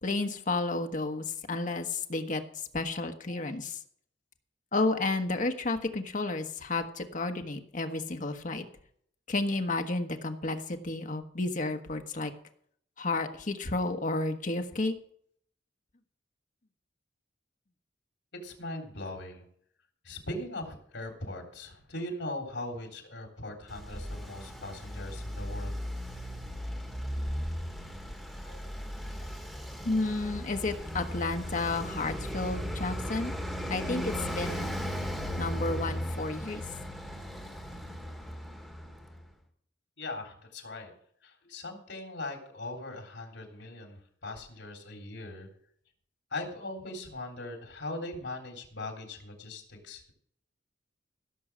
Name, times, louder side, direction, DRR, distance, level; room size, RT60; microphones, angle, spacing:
voice 1, 0.0-2.4 2.7-3.7 4.7-8.6 9.3-12.3 13.0-15.0 28.5-28.6 29.8-33.3 33.7-34.8 35.4-36.6, left 2 dB, 45° left, 6 dB, 1.2 m, -31 dB
voice 2, 18.4-19.5 20.0-25.7 40.0-40.9 41.2-45.5 46.3-50.1, left 2 dB, 80° left, 3 dB, 3.6 m, -40 dB
Traffic noise roadway noise, 23.7-39.2, equal, ahead, 1.9 m, -36 dB
16.0 x 7.1 x 6.2 m, 0.64 s
head